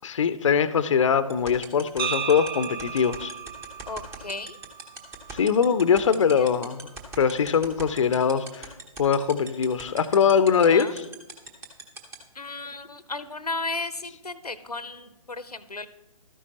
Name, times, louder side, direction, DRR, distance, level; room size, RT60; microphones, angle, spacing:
voice 1, 0.0-3.3 5.3-6.8 7.2-8.7 9.0-11.0, left 7 dB, 55° left, 14 dB, 0.6 m, -22 dB
sound 1, 1.3-12.1, right 3 dB, 15° right, 0.9 m, -38 dB
sound 2, 2.0-6.1, right 6 dB, 35° right, 0.9 m, -35 dB
voice 2, 3.9-4.6 6.3-6.5 10.6-10.9 12.3-15.9, left 3 dB, 90° left, 14 dB, 0.7 m, -34 dB
13.0 x 9.9 x 2.9 m, 1.0 s
figure-of-eight pair, 135°, 19 cm